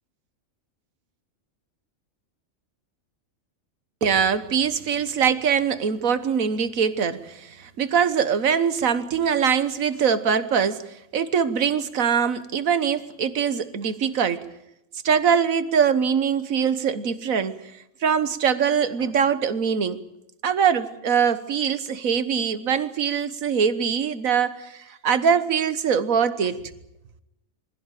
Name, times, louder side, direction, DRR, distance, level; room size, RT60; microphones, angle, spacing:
voice 1, 4.0-10.9 11.1-14.4 15.0-17.6 18.0-20.0 20.4-26.6, right 7 dB, 85° right, 1.6 m, -23 dB
24.0 x 16.0 x 9.1 m
omnidirectional pair, 1.4 m